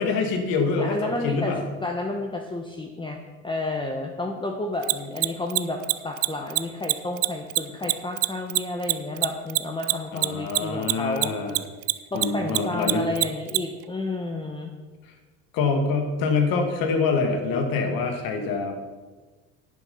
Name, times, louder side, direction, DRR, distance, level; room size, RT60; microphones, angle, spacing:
voice 1, 0.0-1.6 10.1-11.6 12.1-13.0 15.5-18.8, left 4 dB, 65° left, 5 dB, 2.2 m, -25 dB
voice 2, 0.8-11.3 12.1-14.7, left 2 dB, 15° left, 3 dB, 1.1 m, -31 dB
Mechanisms, 4.8-11.6 11.8-13.6, right 26 dB, 65° right, 0.6 m, -22 dB
11.0 x 8.2 x 5.6 m, 1.3 s
supercardioid pair, 85°, 37 cm